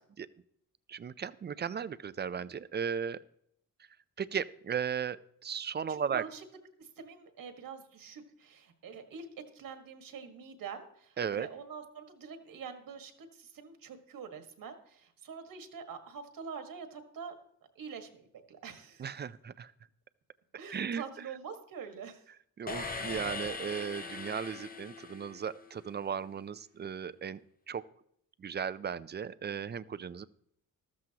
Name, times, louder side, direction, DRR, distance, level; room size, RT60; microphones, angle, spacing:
voice 1, 0.9-3.2 4.2-5.2 5.4-6.2 11.2-11.5 19.0-19.7 20.7-21.0 22.6-27.4 27.7-27.8 28.4-30.2, right 7 dB, 30° right, 16 dB, 0.4 m, -36 dB
voice 2, 5.9-6.4 6.8-9.3 9.5-17.4 17.8-19.1 20.6-22.3, right 6 dB, 70° right, 6 dB, 1.7 m, -45 dB
sound 1, 22.7-25.8, left 4 dB, 25° left, 0.8 m, -40 dB
14.0 x 13.5 x 2.9 m, 0.70 s
cardioid pair, 130°, 35 cm